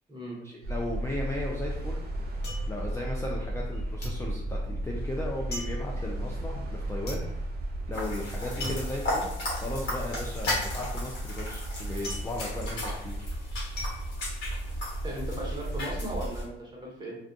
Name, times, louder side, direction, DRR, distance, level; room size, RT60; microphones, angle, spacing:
voice 1, 0.4-2.0 2.7-7.2 7.9-13.3, left 2 dB, 15° left, -2 dB, 0.3 m, -36 dB
sound 1, 0.6-16.4, right 1 dB, 55° right, 0.6 m, -34 dB
sound 2, 2.4-3.7 4.0-15.1 15.5-16.0, left 1 dB, 55° left, 1.0 m, -42 dB
sound 3, 7.9-16.4, left 1 dB, 70° left, 1.1 m, -36 dB
voice 2, 15.0-17.2, right 1 dB, 20° right, -4 dB, 1.0 m, -37 dB
2.4 x 2.2 x 2.6 m, 0.79 s
cardioid pair, 90°, 20 cm